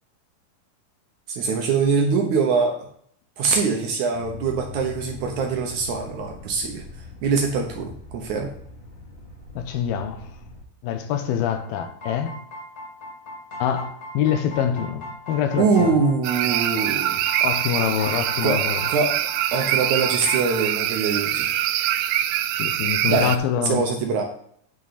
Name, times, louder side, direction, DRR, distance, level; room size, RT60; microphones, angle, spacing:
voice 1, 1.3-2.8 3.4-6.8 7.2-8.5 15.6-17.2 18.4-18.6 18.9-19.2 19.5-21.6 23.1-23.3 23.6-24.2, right 5 dB, 70° right, 2.0 m, -23 dB
sound 1, 4.1-10.6, left 3 dB, 65° left, 4.1 m, -42 dB
voice 2, 9.6-10.3 10.8-12.3 13.6-16.0 17.4-18.8 22.6-23.8, left 9 dB, 80° left, 2.8 m, -25 dB
sound 2, 11.5-20.6, equal, 30° left, 2.1 m, -38 dB
sound 3, 16.2-23.4, right 12 dB, 85° right, 1.9 m, -24 dB
9.1 x 6.2 x 4.1 m
omnidirectional pair, 4.3 m